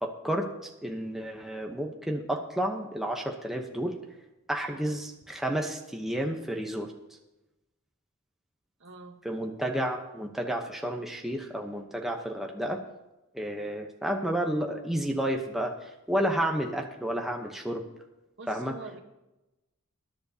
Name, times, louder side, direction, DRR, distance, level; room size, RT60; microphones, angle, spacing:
voice 1, 0.0-3.9 4.5-6.9 9.2-12.8 13.3-15.7 16.1-17.8 18.5-18.7, right 1 dB, ahead, 1 dB, 0.9 m, -31 dB
voice 2, 4.7-5.0 8.8-9.2 18.4-19.0, right 3 dB, 55° right, 5 dB, 1.2 m, -45 dB
20.5 x 10.5 x 2.8 m, 0.98 s
head